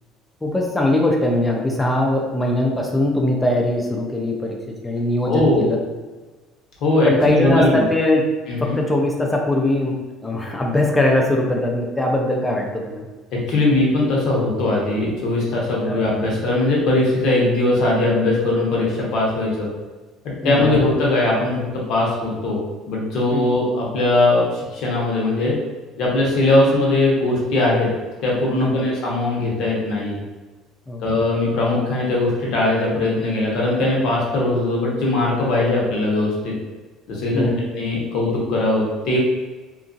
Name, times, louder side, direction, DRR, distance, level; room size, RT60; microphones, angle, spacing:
voice 1, 0.4-5.8 7.0-13.1 15.9-16.0 20.4-20.8 23.3-23.6 28.6-28.9 30.9-31.0 37.3-37.7, left 1 dB, 10° left, 0 dB, 0.4 m, -21 dB
voice 2, 5.2-5.7 6.8-7.1 7.4-7.8 8.5-8.8 13.3-19.7 20.4-21.6 21.9-22.6 22.9-25.5 26.0-27.9 28.2-30.2 31.0-36.5 37.1-39.2, left 2 dB, 60° left, -3 dB, 0.9 m, -20 dB
2.8 x 2.4 x 2.6 m, 1.2 s
cardioid pair, 150°, 0 cm